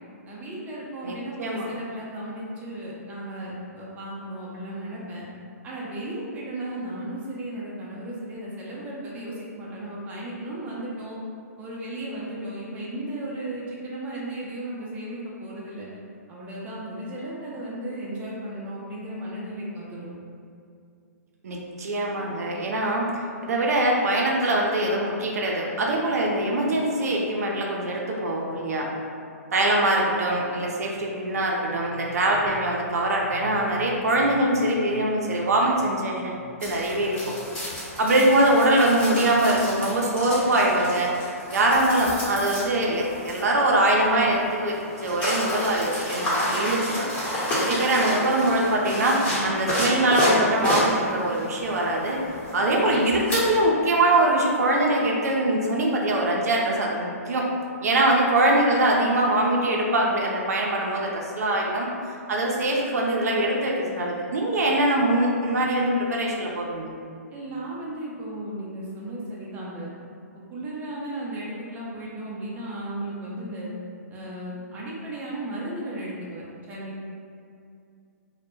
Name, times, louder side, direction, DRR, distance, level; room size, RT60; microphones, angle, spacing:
voice 1, 0.3-5.3 5.6-11.1 11.6-15.9 16.3-20.2 47.7-48.0 49.2-49.6 67.3-69.9 70.5-73.7 74.1-77.1, right 1 dB, 15° right, -6 dB, 0.4 m, -35 dB
voice 2, 1.0-1.7 21.4-23.1 23.4-28.9 29.5-37.3 38.0-47.1 47.6-52.2 52.5-57.5 57.8-61.9 62.3-66.9, right 1 dB, 70° right, -1 dB, 0.4 m, -23 dB
sound 1, 36.6-53.7, equal, 25° left, 1.0 m, -30 dB
2.1 x 2.0 x 3.0 m, 2.4 s
hypercardioid pair, 135°, 9 cm